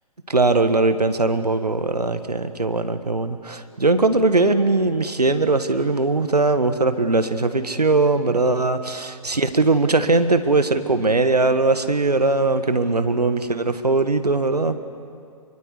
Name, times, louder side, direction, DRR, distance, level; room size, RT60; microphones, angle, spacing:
voice 1, 0.3-14.8, right 3 dB, 80° right, 10 dB, 1.6 m, -20 dB
25.5 x 23.5 x 8.3 m, 2.4 s
figure-of-eight pair, 130°, 20 cm